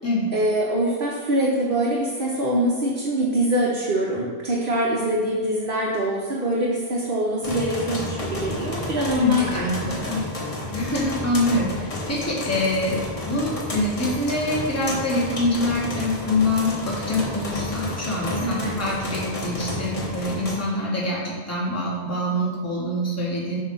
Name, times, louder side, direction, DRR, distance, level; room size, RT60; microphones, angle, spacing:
voice 1, 0.3-10.1 18.4-18.7, right 1 dB, 50° right, -4 dB, 0.9 m, -24 dB
sound 1, 7.4-20.5, left 1 dB, 30° left, 1.0 m, -31 dB
voice 2, 9.2-10.2 10.7-23.6, left 1 dB, 10° left, -5 dB, 1.2 m, -25 dB
7.1 x 2.7 x 5.4 m, 1.5 s
omnidirectional pair, 1.4 m